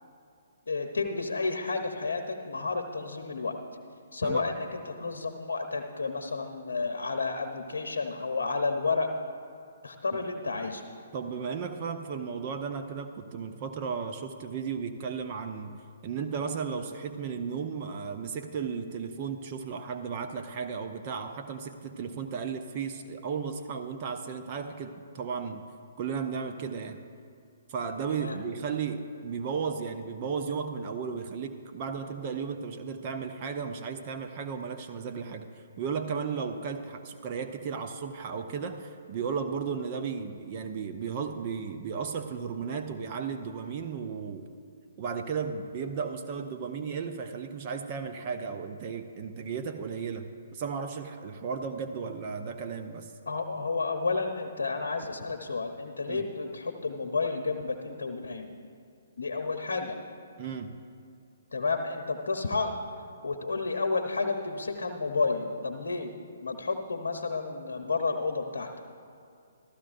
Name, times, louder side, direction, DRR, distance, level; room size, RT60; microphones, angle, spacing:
voice 1, 0.7-3.5 4.1-9.1 9.8-10.8 28.1-28.4 53.3-58.5 59.2-60.0 61.5-62.7 63.2-66.1 66.4-68.8, left 4 dB, 75° left, 5 dB, 0.8 m, -31 dB
voice 2, 11.1-15.8 16.0-25.7 26.0-27.0 27.7-35.5 35.8-44.5 45.0-53.1 56.1-56.2 60.4-60.7, right 6 dB, 40° right, 6 dB, 0.6 m, -34 dB
14.5 x 13.0 x 2.5 m, 2.4 s
figure-of-eight pair, 130°, 0 cm